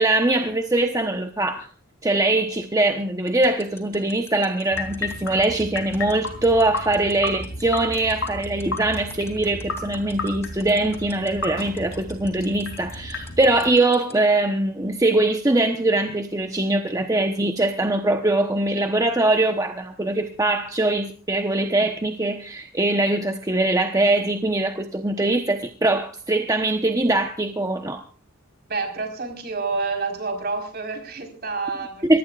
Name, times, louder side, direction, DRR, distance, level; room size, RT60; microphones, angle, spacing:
voice 1, 0.0-1.7 2.0-28.0 32.1-32.2, right 2 dB, 15° right, 4 dB, 1.0 m, -22 dB
sound 1, 3.3-14.1, left 3 dB, 15° left, 2.9 m, -42 dB
sound 2, 4.7-13.7, left 2 dB, 85° left, 3.5 m, -33 dB
voice 2, 28.7-32.2, right 4 dB, 50° right, 4 dB, 4.6 m, -28 dB
24.5 x 19.5 x 2.5 m, 0.39 s
head